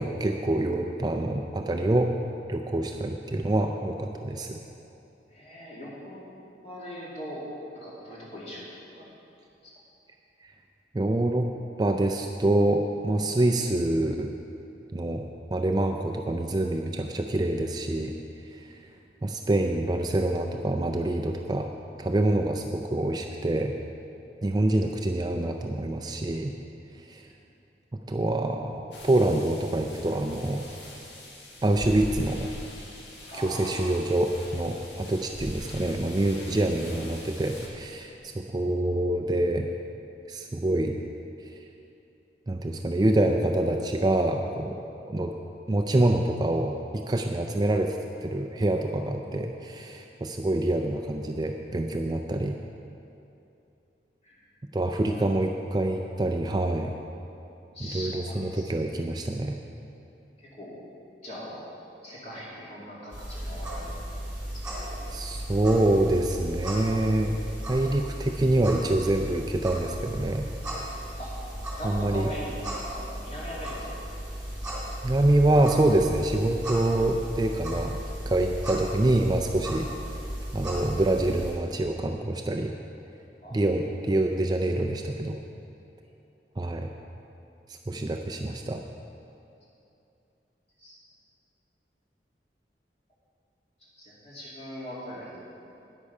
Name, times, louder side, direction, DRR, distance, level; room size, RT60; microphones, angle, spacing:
voice 1, 0.0-2.1 2.5-4.6 10.9-11.5 11.8-14.3 14.9-18.1 18.5-18.8 19.2-21.7 22.0-23.7 24.4-26.5 27.1-27.3 28.1-30.7 31.6-32.5 33.3-39.7 40.3-41.0 42.5-44.7 45.1-45.3 45.7-48.0 48.2-52.6 54.7-56.9 57.8-59.6 65.1-67.4 67.7-70.5 71.8-72.3 75.0-79.9 80.5-82.7 83.5-85.4 86.6-86.9 87.9-88.8, right 1 dB, 25° right, 3 dB, 0.4 m, -26 dB
voice 2, 5.3-6.2 6.6-7.4 7.7-9.1 9.6-9.7 27.2-27.3 33.3-33.9 36.6-36.7 54.2-54.4 57.7-58.7 60.4-60.7 61.2-61.6 62.0-64.1 64.5-64.6 71.2-71.3 71.8-72.5 72.9-74.0 83.4-83.7 90.8-90.9 94.0-95.3, equal, 35° left, -7 dB, 2.5 m, -40 dB
sound 1, 28.9-37.7, left 1 dB, 85° left, 1.8 m, -42 dB
sound 2, 63.1-81.5, right 1 dB, 5° right, 2.6 m, -36 dB
9.8 x 8.4 x 5.4 m, 2.7 s
head